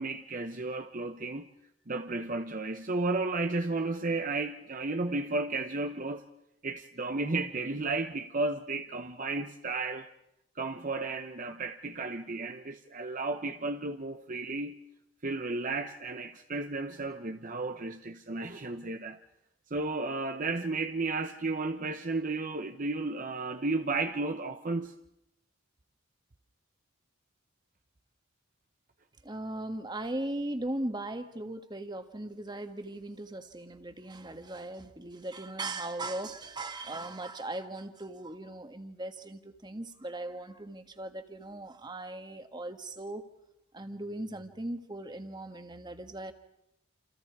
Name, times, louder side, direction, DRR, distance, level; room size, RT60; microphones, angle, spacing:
voice 1, 0.0-1.5 1.9-6.2 6.6-10.1 10.6-14.8 15.2-19.2 19.7-24.9, right 3 dB, 40° right, 0.9 m, -33 dB
voice 2, 29.2-43.2 43.7-46.3, right 1 dB, 20° right, 1.6 m, -38 dB
28.5 x 28.5 x 4.8 m
head